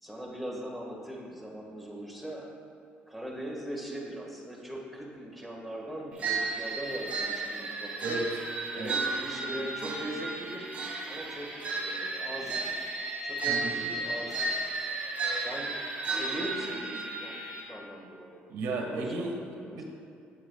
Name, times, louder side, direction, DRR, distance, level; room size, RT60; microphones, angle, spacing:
voice 1, 0.0-2.5 3.1-8.2 8.7-10.7 11.1-11.5 11.7-12.9 13.2-14.6 15.3-15.7 16.1-17.3 17.7-18.4 18.8-19.8, right 1 dB, ahead, -2 dB, 1.8 m, -40 dB
sound 1, 6.2-17.6, right 3 dB, 35° right, 2.3 m, -33 dB
voice 2, 8.0-8.4 8.7-9.0 13.5-13.8 18.5-19.4 19.7-19.8, right 2 dB, 85° right, 0 dB, 1.6 m, -33 dB
17.5 x 7.3 x 2.4 m, 2.5 s
cardioid pair, 140°, 4 cm